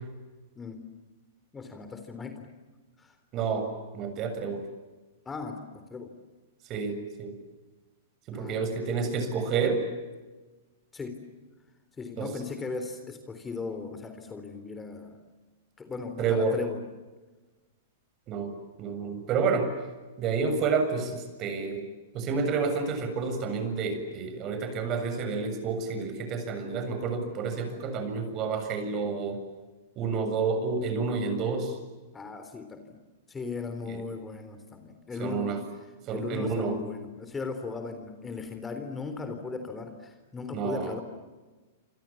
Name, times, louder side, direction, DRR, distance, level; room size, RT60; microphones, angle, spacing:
voice 1, 0.6-0.9 1.5-2.5 3.0-3.2 5.3-6.2 8.3-9.1 10.9-11.3 12.0-15.2 15.8-16.8 21.6-21.9 32.1-33.0 33.3-35.6 36.1-41.0, left 4 dB, 15° left, 8 dB, 3.7 m, -38 dB
voice 2, 3.3-3.7 3.9-4.6 6.7-7.3 8.3-9.8 12.2-12.3 16.2-16.6 18.3-18.5 18.8-19.7 20.2-21.9 22.1-29.4 30.0-31.8 33.9-34.0 35.2-35.6 36.1-36.8 40.5-40.9, right 5 dB, 35° right, 7 dB, 7.3 m, -29 dB
29.0 x 27.0 x 7.3 m, 1.2 s
hypercardioid pair, 110°, 0 cm